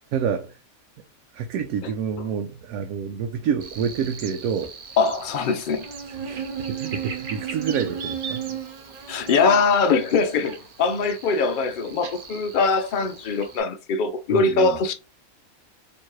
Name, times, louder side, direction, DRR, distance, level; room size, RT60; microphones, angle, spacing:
voice 1, 0.1-0.5 1.3-4.7 6.2-8.4 14.3-14.8, right 7 dB, 85° right, 1.0 m, -28 dB
Buzz, 3.6-13.6, right 7 dB, 45° right, 0.8 m, -36 dB
voice 2, 5.0-5.8 9.1-14.9, left 4 dB, 80° left, 0.4 m, -22 dB
4.5 x 2.9 x 3.0 m
omnidirectional pair, 1.5 m